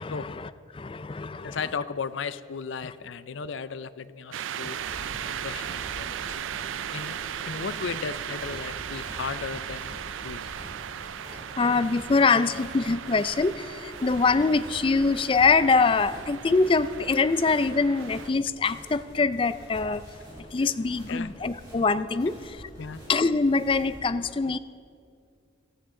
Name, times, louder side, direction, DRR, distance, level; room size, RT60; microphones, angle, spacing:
voice 1, 0.0-1.6 5.2-5.4 11.6-20.0 20.5-22.7 23.1-24.6, left 4 dB, 25° left, 13 dB, 0.3 m, -24 dB
voice 2, 1.4-4.8 5.4-6.3 6.9-7.2 7.5-10.0 10.2-10.6 20.6-20.7 21.1-21.3 22.8-23.0, left 5 dB, 75° left, 14 dB, 0.5 m, -35 dB
sound 1, 4.3-18.3, right 9 dB, 85° right, 0.4 m, -37 dB
sound 2, 4.7-24.0, equal, 20° right, 3.6 m, -46 dB
18.0 x 13.5 x 3.8 m, 2.3 s
head